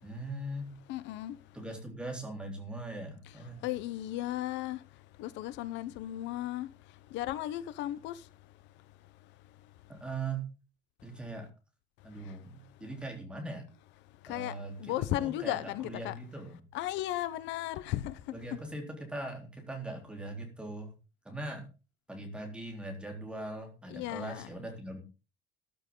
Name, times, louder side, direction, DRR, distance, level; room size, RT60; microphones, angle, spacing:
voice 1, 0.0-0.7 1.5-3.7 9.9-10.5 11.0-11.5 12.0-13.7 14.3-16.6 18.3-20.9 21.3-21.7 22.1-25.0, right 2 dB, 5° right, 3.8 m, -40 dB
voice 2, 0.9-1.3 3.6-4.8 5.2-6.7 7.1-8.1 14.3-14.5 14.8-16.1 16.7-18.1 23.9-24.5, left 14 dB, 70° left, 1.0 m, -35 dB
13.5 x 11.5 x 3.9 m
cardioid pair, 165°, 19 cm